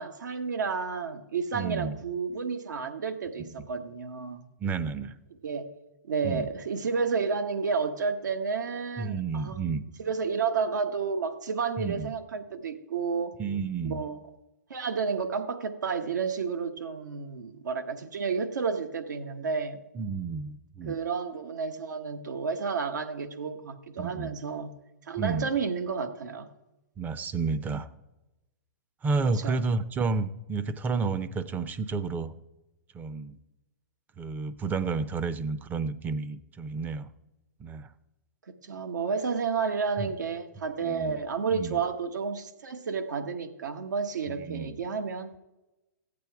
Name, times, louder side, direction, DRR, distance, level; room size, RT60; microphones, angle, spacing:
voice 1, 0.0-4.4 5.4-5.7 6.0-9.6 10.0-13.4 13.8-14.2 14.7-19.8 20.9-24.7 25.1-26.5 29.4-29.6 38.6-45.4, right 5 dB, 80° right, 7 dB, 1.2 m, -31 dB
voice 2, 1.5-2.0 4.6-5.2 6.2-6.5 9.0-9.8 11.8-12.1 13.4-14.0 19.9-21.0 24.0-24.4 25.2-25.5 27.0-27.9 29.0-32.3 32.9-33.4 34.2-37.1 37.6-37.9 40.0-40.1 40.8-41.2 41.5-41.8 44.3-44.8, right 4 dB, 20° right, 13 dB, 0.6 m, -31 dB
14.5 x 8.5 x 4.7 m, 1.0 s
hypercardioid pair, 125°, 10 cm